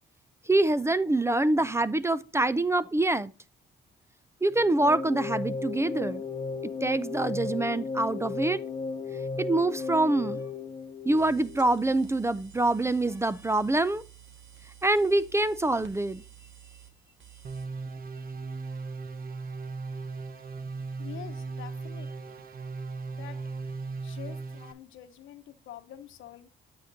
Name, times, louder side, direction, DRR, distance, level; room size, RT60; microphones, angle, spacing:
voice 1, 0.5-3.3 4.4-6.2 6.6-8.6 9.4-10.4 11.0-14.0 14.8-16.2, right 2 dB, 15° right, 0.4 m, -25 dB
sound 1, 4.5-11.7, left 4 dB, 35° left, 0.8 m, -35 dB
sound 2, 11.1-17.7, right 10 dB, 70° right, 1.6 m, -52 dB
sound 3, 17.4-24.7, right 4 dB, 45° right, 1.0 m, -37 dB
voice 2, 21.0-22.4 23.1-23.4 24.0-26.5, left 11 dB, 80° left, 0.9 m, -46 dB
8.5 x 7.8 x 2.7 m
cardioid pair, 90°, 20 cm